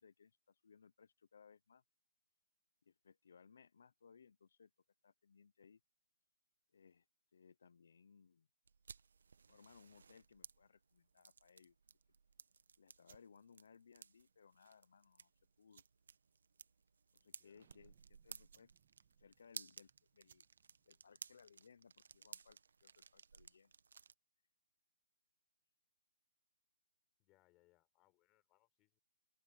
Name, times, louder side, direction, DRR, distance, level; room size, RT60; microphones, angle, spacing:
voice 1, 0.0-1.8 2.8-4.7 5.0-5.8 6.7-7.1 7.3-8.5 9.5-11.8 12.8-15.3 15.6-15.8 17.1-18.7 19.2-20.4 20.9-23.7, left 6 dB, 65° left, 0.7 m, -65 dB
sound 1, 8.6-24.1, right 5 dB, 75° right, 1.2 m, -58 dB
sound 2, 13.0-22.5, right 7 dB, 55° right, 1.4 m, -74 dB
voice 2, 17.3-17.9 27.2-29.0, left 20 dB, 20° left, 4.9 m, -76 dB
Thunder, 17.5-22.7, right 12 dB, 35° right, 1.7 m, -79 dB
open air
hypercardioid pair, 165°, 0 cm